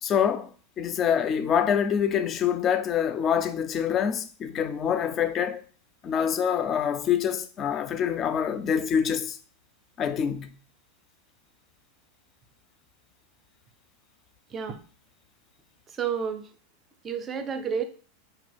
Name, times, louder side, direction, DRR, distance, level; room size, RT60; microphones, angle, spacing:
voice 1, 0.0-0.5 0.8-5.6 6.0-9.4 10.0-10.6, left 8 dB, 35° left, 0.3 m, -25 dB
voice 2, 16.0-16.4 17.0-17.8, right 7 dB, 30° right, 0.4 m, -30 dB
2.9 x 2.3 x 3.2 m
hypercardioid pair, 100°, 0 cm